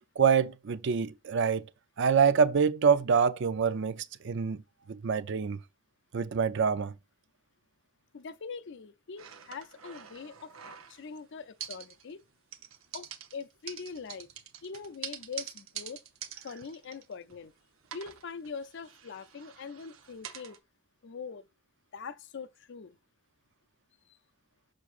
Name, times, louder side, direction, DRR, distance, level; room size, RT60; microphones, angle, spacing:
voice 1, 0.2-1.6 2.0-4.6 4.9-5.6 6.1-6.9, right 6 dB, 60° right, 0.5 m, -26 dB
voice 2, 8.1-12.2 12.9-14.3 14.6-16.0 16.4-17.5 17.9-20.6 21.0-21.4 21.9-23.0, left 5 dB, 60° left, 0.5 m, -43 dB
sound 1, 9.2-11.2 11.6-12.2 12.5-17.5 17.8-20.6, right 9 dB, 80° right, 0.9 m, -46 dB
6.5 x 5.9 x 2.4 m
head